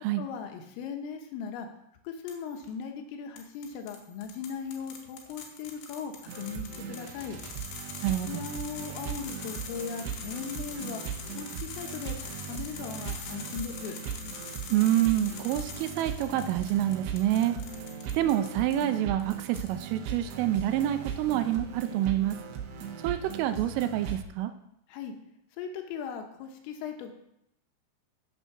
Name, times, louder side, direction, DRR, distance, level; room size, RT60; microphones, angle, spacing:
voice 1, 0.2-1.7 2.1-7.4 8.3-11.0 11.4-14.0 24.9-25.1 25.6-27.1, left 6 dB, 80° left, 4 dB, 3.7 m, -38 dB
sound 1, 2.3-2.7 3.4-18.8 19.2-20.0, left 5 dB, 65° left, 3.1 m, -44 dB
sound 2, 6.3-24.2, right 8 dB, 70° right, 2.6 m, -39 dB
voice 2, 8.0-8.4 14.7-17.6 18.1-22.4 23.0-24.5, right 12 dB, 85° right, 10 dB, 3.2 m, -27 dB
9.1 x 8.1 x 6.1 m, 0.78 s
omnidirectional pair, 5.9 m